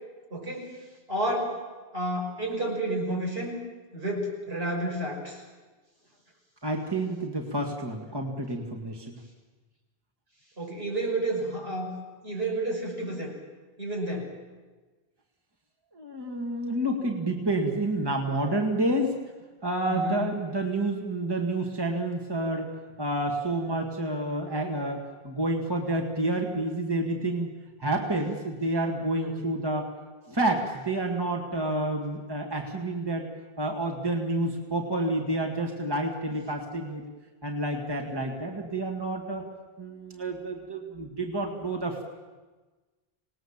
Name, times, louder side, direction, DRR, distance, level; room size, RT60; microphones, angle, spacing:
voice 1, 0.3-0.8 1.1-1.6 1.9-3.6 3.9-5.4 10.6-12.0 12.2-13.3 13.8-14.4 19.9-20.3 29.1-29.4 38.0-38.2, right 1 dB, 70° right, 0 dB, 6.1 m, -31 dB
voice 2, 6.6-9.2 15.9-19.2 19.6-27.5 27.8-29.9 30.3-33.3 33.6-37.0 37.4-39.5 39.8-42.0, right 1 dB, 25° right, 1 dB, 1.9 m, -29 dB
27.0 x 19.0 x 7.3 m, 1.3 s
omnidirectional pair, 1.0 m